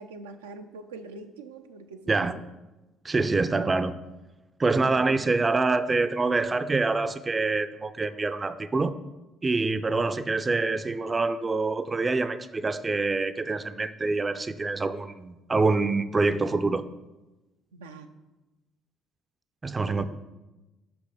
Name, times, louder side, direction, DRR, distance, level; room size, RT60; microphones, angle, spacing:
voice 1, 0.0-2.4 4.8-5.2 17.7-18.1 19.9-20.0, right 3 dB, 85° right, 0.4 m, -43 dB
voice 2, 3.0-3.9 4.6-8.9 9.4-16.8 19.6-20.0, right 3 dB, 30° right, 0.4 m, -26 dB
6.0 x 5.8 x 4.9 m
hypercardioid pair, 50°, 0 cm